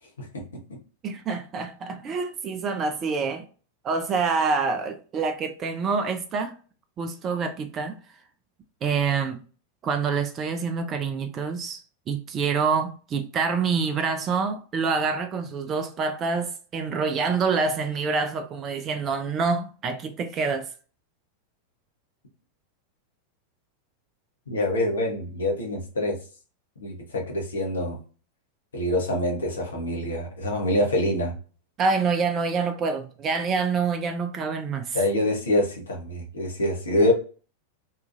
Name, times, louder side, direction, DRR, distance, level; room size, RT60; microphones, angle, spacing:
voice 1, 0.2-0.8 24.5-26.2 26.8-28.0 28.7-31.3 34.9-37.1, left 1 dB, 70° left, 0.8 m, -25 dB
voice 2, 1.0-3.4 3.8-6.5 7.0-8.0 8.8-9.4 9.8-11.8 12.1-20.7 31.8-35.0, right 5 dB, 30° right, 0.3 m, -26 dB
2.7 x 2.3 x 2.4 m
figure-of-eight pair, 90°, 0 cm